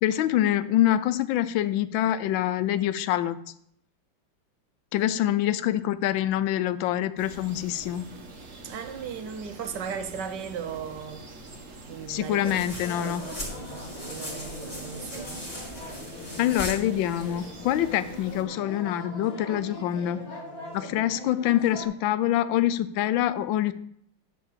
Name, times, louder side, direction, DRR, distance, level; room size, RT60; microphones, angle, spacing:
voice 1, 0.0-3.4 4.9-8.1 12.1-13.2 16.4-20.3 20.7-23.7, left 12 dB, 90° left, 1.3 m, -25 dB
sound 1, 7.2-18.4, right 2 dB, 45° right, 1.4 m, -45 dB
voice 2, 8.6-11.2 11.9-12.6 13.0-15.5, right 7 dB, 70° right, 1.4 m, -37 dB
sound 2, 12.4-17.5, left 1 dB, 20° left, 2.7 m, -39 dB
sound 3, 12.8-21.8, left 1 dB, 50° left, 2.5 m, -41 dB
11.0 x 3.9 x 7.3 m
omnidirectional pair, 2.0 m